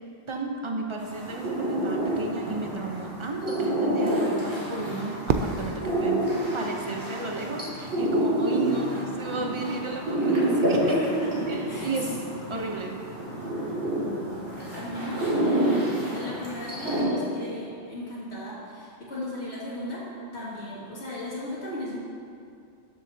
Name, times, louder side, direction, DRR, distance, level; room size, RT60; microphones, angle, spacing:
voice 1, 0.3-6.3 6.5-10.9 11.5-12.2 12.5-13.0, right 3 dB, 30° right, 1 dB, 0.8 m, -33 dB
sound 1, 1.0-17.0, right 1 dB, 80° right, 2.7 m, -28 dB
Fireworks, 5.3-7.5, right 5 dB, 60° right, 0.6 m, -31 dB
voice 2, 10.9-11.9 13.9-15.8 16.1-20.0 20.3-22.0, equal, 80° left, -7 dB, 2.4 m, -35 dB
13.0 x 7.1 x 2.8 m, 2.5 s
omnidirectional pair, 1.1 m